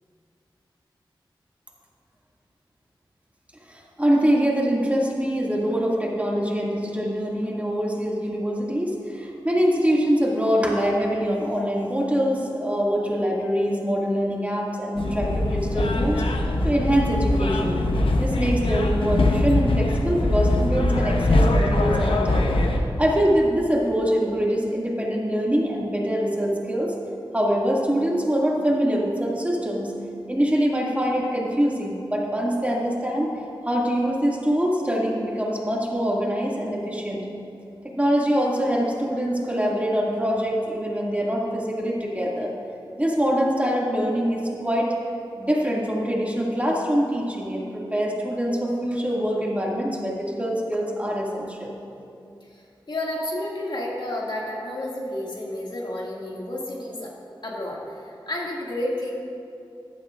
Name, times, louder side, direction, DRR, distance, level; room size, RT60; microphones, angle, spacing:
voice 1, 3.7-16.2 16.6-17.8 18.2-22.5 23.0-26.9 27.3-29.9 30.3-33.3 33.6-37.2 37.8-42.5 43.0-44.9 45.4-51.7, equal, 15° right, -3 dB, 2.3 m, -24 dB
sound 1, 15.0-22.8, left 2 dB, 75° left, 0.9 m, -22 dB
voice 2, 52.4-57.1 57.4-59.1, left 1 dB, 60° left, -4 dB, 2.2 m, -31 dB
14.5 x 12.0 x 2.6 m, 2.6 s
cardioid pair, 40°, 9 cm